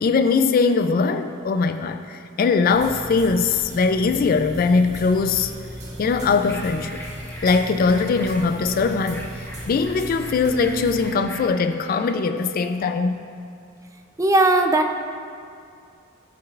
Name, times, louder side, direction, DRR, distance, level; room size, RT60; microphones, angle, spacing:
voice 1, 0.0-5.5 6.0-7.0 7.4-13.2, left 4 dB, 45° left, 8 dB, 0.3 m, -21 dB
sound 1, 2.6-11.1, equal, 35° right, 2.0 m, -37 dB
sound 2, 6.4-12.1, left 1 dB, 15° left, 1.2 m, -41 dB
voice 2, 14.2-14.9, right 2 dB, 15° right, 5 dB, 0.5 m, -17 dB
13.5 x 7.8 x 2.4 m, 2.4 s
head